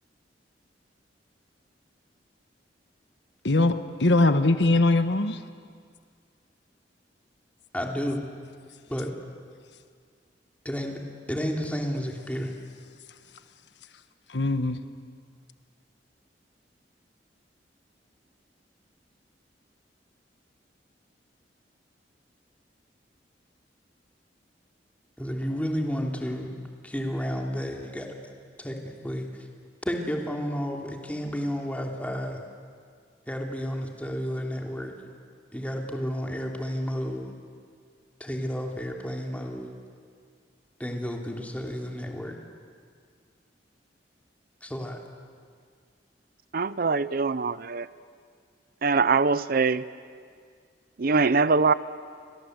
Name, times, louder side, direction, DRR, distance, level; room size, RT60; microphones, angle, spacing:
voice 1, 4.0-5.4 14.3-14.8, left 2 dB, 75° left, 10 dB, 1.3 m, -21 dB
voice 2, 7.7-8.2 8.9-9.1 10.6-11.0 11.3-12.5 25.2-26.5 26.8-28.1 28.6-29.3 29.8-32.4 33.3-34.9 35.5-37.3 38.2-39.7 40.8-42.3 44.6-45.0, equal, 10° left, 1 dB, 3.2 m, -31 dB
voice 3, 46.5-47.9 48.8-49.8 51.0-51.7, right 4 dB, 55° right, 16 dB, 0.6 m, -23 dB
30.0 x 24.0 x 8.1 m, 2.1 s
head